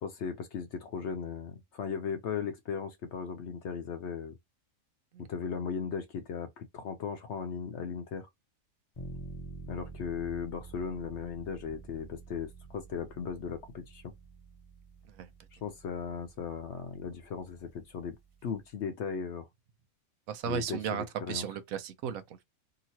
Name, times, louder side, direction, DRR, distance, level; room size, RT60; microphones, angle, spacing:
voice 1, 0.0-4.4 5.3-8.3 9.7-14.1 15.5-19.5 20.4-21.5, left 6 dB, 65° left, 0.8 m, -37 dB
sound 1, 8.9-18.7, right 3 dB, 40° left, 0.5 m, -49 dB
voice 2, 20.3-22.4, right 8 dB, 90° right, 1.0 m, -35 dB
2.8 x 2.8 x 2.8 m
omnidirectional pair, 1.4 m